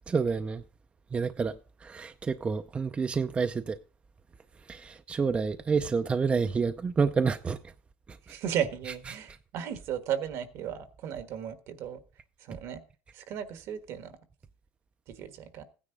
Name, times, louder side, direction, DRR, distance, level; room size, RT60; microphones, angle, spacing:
voice 1, 0.1-0.6 1.1-1.5 1.8-3.8 4.7-7.7 8.1-8.3 9.1-9.2, right 5 dB, 25° right, 0.6 m, -29 dB
voice 2, 8.2-12.0 12.4-12.8 13.1-14.2 15.1-15.6, right 9 dB, 65° right, 1.4 m, -35 dB
15.5 x 9.8 x 3.9 m
cardioid pair, 120°, 5 cm